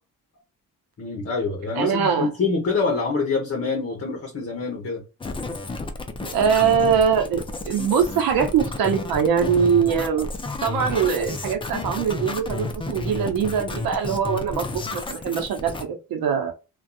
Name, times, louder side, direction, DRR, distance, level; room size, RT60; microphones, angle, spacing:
voice 1, 1.0-5.0, left 4 dB, 40° left, 0.9 m, -25 dB
voice 2, 1.8-2.3 6.2-10.3 10.6-16.5, right 7 dB, 85° right, 0.8 m, -22 dB
sound 1, 5.2-15.8, left 3 dB, 15° left, 0.5 m, -31 dB
2.6 x 2.3 x 2.3 m
cardioid pair, 90°, 35 cm